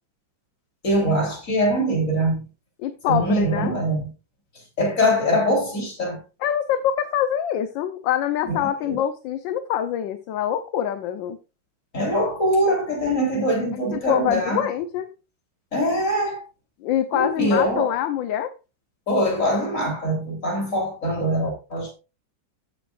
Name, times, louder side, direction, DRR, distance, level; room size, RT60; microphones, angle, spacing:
voice 1, 0.8-2.4 3.1-4.1 4.8-6.2 8.4-8.6 8.9-9.0 11.9-14.6 15.7-16.4 17.1-17.9 19.1-21.9, equal, 40° left, 3.8 m, -23 dB
voice 2, 2.8-3.7 6.4-11.4 13.9-15.1 16.8-18.5, left 10 dB, 75° left, 1.4 m, -25 dB
14.0 x 7.1 x 2.4 m
omnidirectional pair, 2.1 m